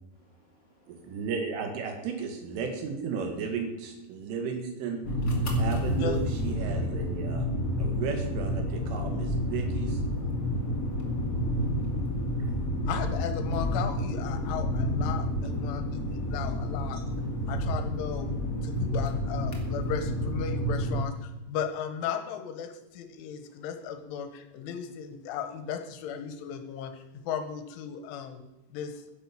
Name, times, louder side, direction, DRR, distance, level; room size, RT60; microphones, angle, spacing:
voice 1, 0.1-1.2 6.7-6.8 7.9-8.0 10.2-12.9 17.2-17.3 23.4-23.7 28.1-28.3, equal, 40° right, -2 dB, 1.5 m, -65 dB
voice 2, 0.9-5.0 5.6-7.5 7.8-10.0 12.4-12.5 16.9-17.0, right 5 dB, 80° right, 4 dB, 4.4 m, -34 dB
sound 1, 5.0-21.0, equal, 35° left, 1.3 m, -29 dB
voice 3, 5.9-6.2 12.9-17.0 17.5-28.4 28.7-29.0, left 8 dB, 80° left, 8 dB, 3.6 m, -36 dB
11.0 x 10.5 x 7.5 m, 0.99 s
omnidirectional pair, 5.7 m